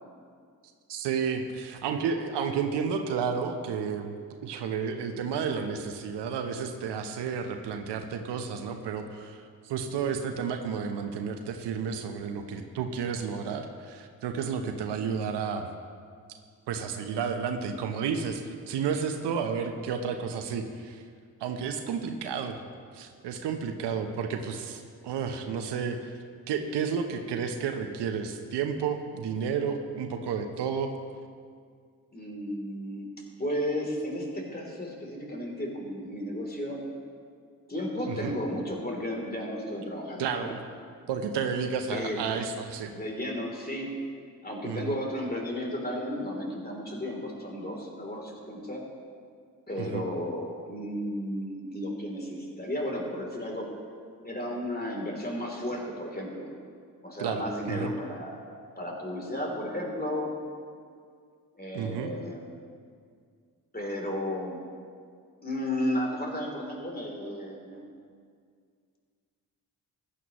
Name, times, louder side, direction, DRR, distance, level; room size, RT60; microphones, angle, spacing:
voice 1, 0.9-4.2 4.4-15.7 16.7-21.0 21.4-22.6 22.9-26.2 26.5-30.9 38.1-38.4 40.2-40.6 41.1-42.9 44.6-44.9 49.8-50.0 57.2-57.9 61.7-62.1, right 6 dB, 75° right, 6 dB, 0.9 m, -31 dB
voice 2, 32.1-36.9 37.7-40.5 41.9-42.2 42.9-44.1 44.4-48.8 49.7-53.7 54.2-56.5 57.0-58.4 58.8-60.3 61.6-62.5 63.7-64.6 65.4-67.9, left 1 dB, 20° left, 0 dB, 3.2 m, -33 dB
15.0 x 11.0 x 3.1 m, 2.1 s
hypercardioid pair, 40°, 42 cm